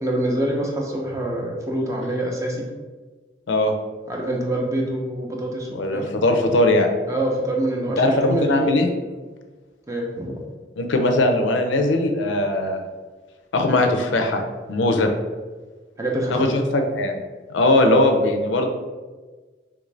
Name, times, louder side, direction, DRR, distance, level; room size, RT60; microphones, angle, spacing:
voice 1, 0.0-2.7 4.1-6.1 7.1-8.7 9.9-10.3 16.0-16.6, right 1 dB, 15° right, -1 dB, 0.4 m, -25 dB
voice 2, 5.7-6.9 8.0-8.9 10.8-12.8 13.5-14.4 14.7-15.1 16.3-17.2 17.5-18.6, left 1 dB, 85° left, 5 dB, 0.4 m, -20 dB
3.3 x 2.5 x 3.2 m, 1.3 s
head